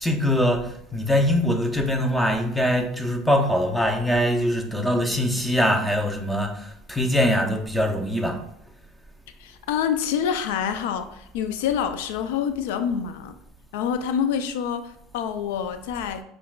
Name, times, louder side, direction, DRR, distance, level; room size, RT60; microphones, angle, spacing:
voice 1, 0.0-8.4, equal, 5° left, 4 dB, 0.6 m, -23 dB
voice 2, 9.4-13.3 13.7-16.2, left 8 dB, 80° left, 9 dB, 0.3 m, -27 dB
5.6 x 2.3 x 2.3 m, 0.73 s
supercardioid pair, 100°, 0 cm